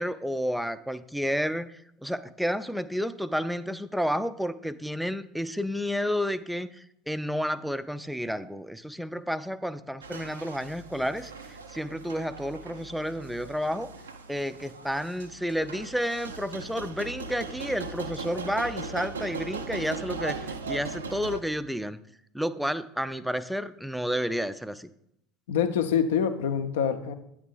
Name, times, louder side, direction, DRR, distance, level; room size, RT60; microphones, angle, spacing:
voice 1, 0.0-1.7 2.0-13.9 14.3-22.0 22.3-24.9, equal, ahead, 14 dB, 0.4 m, -31 dB
sound 1, 10.0-21.4, right 4 dB, 80° right, 0.4 m, -39 dB
voice 2, 25.5-27.1, left 8 dB, 70° left, 8 dB, 0.5 m, -25 dB
8.7 x 3.4 x 5.0 m, 0.76 s
figure-of-eight pair, 65°, 0 cm